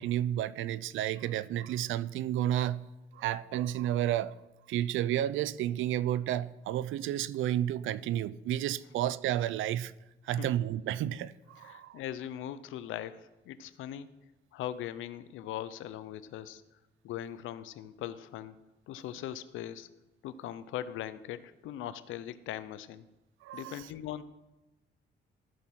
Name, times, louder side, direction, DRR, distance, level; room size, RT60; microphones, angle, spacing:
voice 1, 0.0-2.9 3.1-4.4 4.7-9.9 10.2-12.0 23.4-23.9, right 12 dB, 80° right, 0.4 m, -31 dB
voice 2, 11.6-14.1 14.5-16.6 17.0-18.6 18.9-19.9 20.2-23.1 23.5-24.2, left 11 dB, 85° left, 0.6 m, -40 dB
14.0 x 6.1 x 4.3 m
cardioid pair, 90°, 20 cm